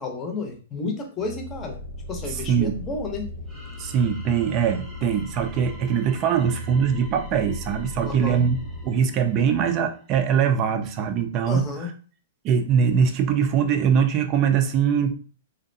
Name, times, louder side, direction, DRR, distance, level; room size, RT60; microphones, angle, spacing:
voice 1, 0.0-1.8 2.1-3.2 8.0-8.4 11.5-11.9, left 3 dB, 25° left, 3 dB, 0.7 m, -31 dB
sound 1, 1.2-8.9, left 1 dB, 65° left, 0.8 m, -37 dB
voice 2, 2.3-2.7 3.8-8.6 8.8-11.7 12.4-15.1, right 7 dB, 35° right, 7 dB, 0.4 m, -22 dB
sound 2, 3.5-10.1, left 1 dB, ahead, 0.9 m, -49 dB
2.6 x 2.1 x 2.6 m, 0.39 s
hypercardioid pair, 125°, 0 cm